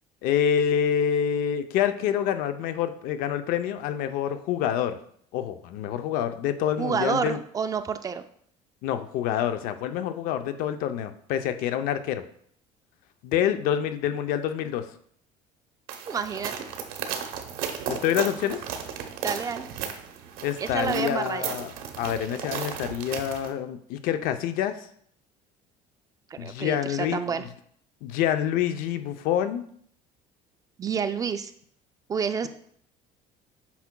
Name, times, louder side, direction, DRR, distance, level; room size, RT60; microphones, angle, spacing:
voice 1, 0.2-5.0 5.3-7.4 8.8-12.2 13.2-14.9 17.9-18.6 20.4-24.9 26.4-27.5 28.0-29.6, left 9 dB, 70° left, 9 dB, 0.6 m, -27 dB
voice 2, 6.8-8.2 16.1-16.7 19.2-19.7 20.6-21.6 26.4-27.4 30.8-31.5 32.1-32.5, right 6 dB, 25° right, 10 dB, 0.3 m, -29 dB
sound 1, 15.9-23.5, right 8 dB, 75° right, 0.9 m, -35 dB
8.3 x 5.7 x 2.2 m, 0.64 s
cardioid pair, 145°, 15 cm